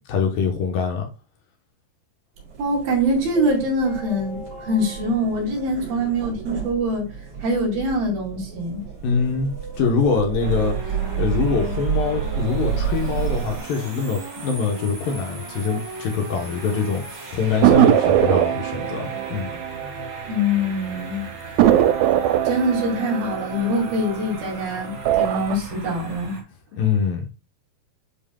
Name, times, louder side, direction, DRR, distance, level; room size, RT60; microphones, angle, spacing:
voice 1, 0.1-1.1 9.0-19.5 26.7-27.3, left 5 dB, 70° left, 2.5 m, -24 dB
sound 1, 2.4-13.6, right 8 dB, 45° right, 4.5 m, -30 dB
voice 2, 2.6-7.1 7.4-8.8 20.3-21.5 22.5-26.4, equal, 65° right, 4.2 m, -24 dB
sound 2, 10.4-26.4, right 3 dB, 30° right, 2.4 m, -37 dB
sound 3, 17.6-20.7 21.0-21.1 21.6-24.5 24.9-25.6, right 12 dB, 85° right, 2.1 m, -20 dB
10.0 x 4.5 x 2.3 m
omnidirectional pair, 4.6 m